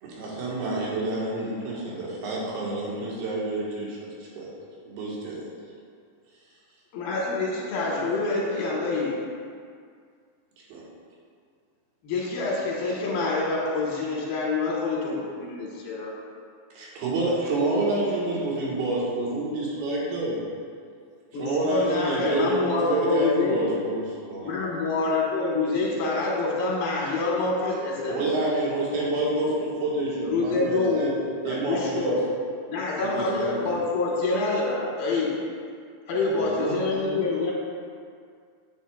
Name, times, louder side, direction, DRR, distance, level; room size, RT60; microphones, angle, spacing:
voice 1, 0.0-4.6 4.9-5.5 10.7-10.8 16.7-20.4 21.4-24.7 28.1-31.2 31.4-32.2 33.0-33.8, right 2 dB, 90° right, -5 dB, 3.4 m, -28 dB
voice 2, 6.9-9.2 12.0-16.1 21.3-23.6 24.4-28.3 30.3-32.2 32.7-35.3 36.1-37.5, left 3 dB, 85° left, -4 dB, 3.2 m, -26 dB
voice 3, 36.3-37.5, right 3 dB, 75° right, -3 dB, 2.8 m, -33 dB
9.2 x 8.1 x 2.3 m, 2.2 s
omnidirectional pair, 4.3 m